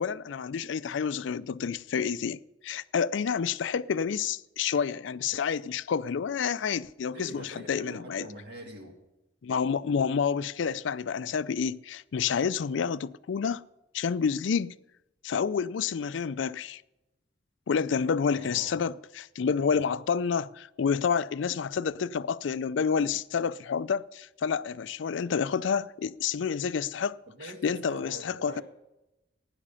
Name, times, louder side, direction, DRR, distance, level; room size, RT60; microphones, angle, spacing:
voice 1, 0.0-8.3 9.4-13.6 13.9-14.7 15.2-16.8 17.7-27.2 27.4-28.6, left 6 dB, 75° left, 0.4 m, -29 dB
voice 2, 7.1-9.0 18.3-18.8 27.3-28.6, right 1 dB, 55° right, 2.1 m, -44 dB
16.0 x 9.9 x 5.6 m
head